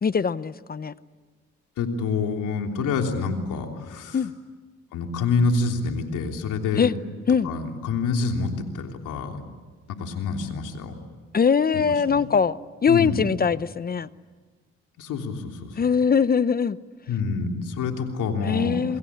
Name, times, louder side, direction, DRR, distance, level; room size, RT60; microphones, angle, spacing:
voice 1, 0.0-0.9 4.1-4.3 6.8-6.9 7.3-7.5 11.3-14.1 15.8-16.8 18.5-19.0, left 6 dB, 30° left, 16 dB, 0.7 m, -22 dB
voice 2, 1.8-4.2 4.9-6.9 7.4-9.4 9.9-10.9 11.7-12.2 12.9-13.3 15.0-15.7 17.1-18.8, left 4 dB, 85° left, 3 dB, 3.3 m, -27 dB
29.0 x 22.0 x 8.6 m, 1.4 s
cardioid pair, 90°, 30 cm